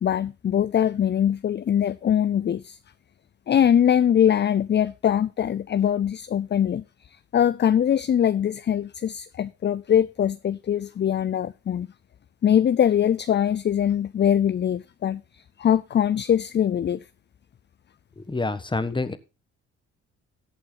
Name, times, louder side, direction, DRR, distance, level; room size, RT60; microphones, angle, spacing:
voice 1, 0.0-2.8 3.5-6.8 7.3-11.9 12.4-15.2 15.6-17.0, left 9 dB, 35° left, 0.5 m, -22 dB
voice 2, 18.2-19.2, left 3 dB, 15° left, 1.4 m, -27 dB
14.5 x 8.5 x 4.0 m
cardioid pair, 90°, 30 cm